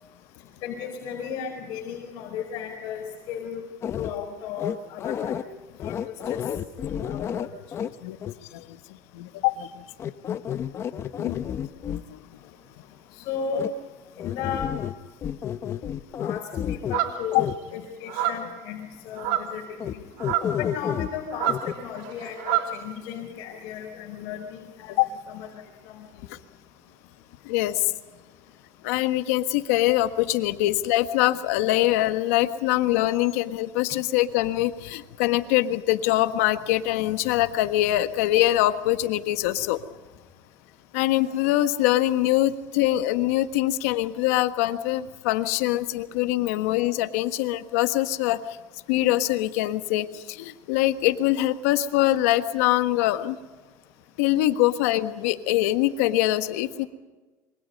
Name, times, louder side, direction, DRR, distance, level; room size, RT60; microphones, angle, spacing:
voice 1, 0.6-3.6 4.0-5.4 5.8-5.9 6.3-6.4 6.8-7.5 13.2-13.7 14.2-14.7 16.2-20.0 20.6-24.9 25.3-26.0, left 7 dB, 60° left, 0 dB, 5.0 m, -35 dB
sound 1, 3.8-4.1 4.6-5.4 5.8-7.9 8.2-8.3 10.0-12.0 13.5-13.7 14.2-15.0 15.2-17.0 17.3-17.6 19.8-19.9 20.2-21.1 21.4-21.7, left 9 dB, 35° left, 1.0 m, -30 dB
voice 2, 9.1-9.8 11.2-11.4 11.8-12.2 17.3-17.4 25.0-25.1 26.3-26.4 27.4-27.8 28.8-39.8 40.9-48.4 48.9-53.4 54.2-56.9, left 15 dB, 90° left, 10 dB, 1.5 m, -23 dB
sound 2, 16.9-17.4 18.1-18.5 19.2-19.6 20.2-20.6 21.3-22.8, right 12 dB, 75° right, 3.1 m, -27 dB
27.0 x 24.0 x 5.4 m, 1.3 s
cardioid pair, 140°, 8 cm